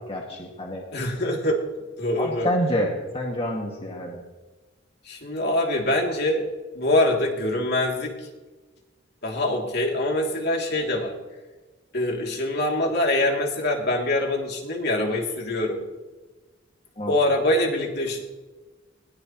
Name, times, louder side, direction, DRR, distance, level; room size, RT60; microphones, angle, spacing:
voice 1, 0.1-0.8 2.2-4.2 17.0-17.1, equal, 30° left, -1 dB, 2.2 m, -27 dB
voice 2, 0.9-1.6 2.0-2.5 5.0-6.4 6.7-8.3 9.2-11.1 11.9-15.8 17.1-18.2, left 1 dB, 55° left, 0 dB, 3.1 m, -24 dB
21.0 x 18.0 x 3.2 m, 1.2 s
head